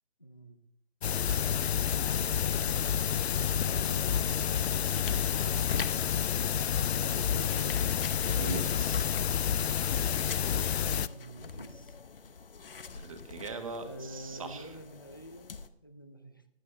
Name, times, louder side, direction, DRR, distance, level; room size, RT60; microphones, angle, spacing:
voice 1, 0.2-0.6 2.0-7.8 11.0-12.0 13.8-16.5, equal, 20° left, 8 dB, 0.5 m, -48 dB
sound 1, 1.0-11.1, left 8 dB, 80° left, 0.5 m, -29 dB
sound 2, 4.4-15.7, left 5 dB, 60° left, 0.9 m, -45 dB
voice 2, 8.3-9.1 12.9-14.7, right 3 dB, 35° right, 6 dB, 1.4 m, -40 dB
15.0 x 12.0 x 3.3 m, 0.81 s
hypercardioid pair, 175°, 32 cm